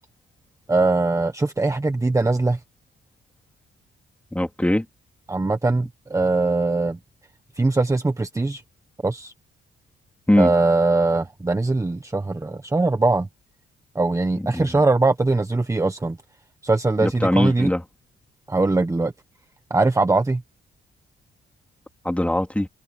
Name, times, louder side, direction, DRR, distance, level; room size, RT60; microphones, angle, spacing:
voice 1, 0.7-2.6 5.3-7.0 7.6-8.6 9.0-9.3 10.4-13.3 13.9-16.2 16.6-17.7 18.5-19.1 19.7-20.4, right 3 dB, 15° right, 1.3 m, -21 dB
voice 2, 4.3-4.8 10.3-10.5 14.4-14.7 17.0-17.8 22.0-22.7, left 1 dB, 5° left, 3.3 m, -21 dB
cardioid pair, 115°, 21 cm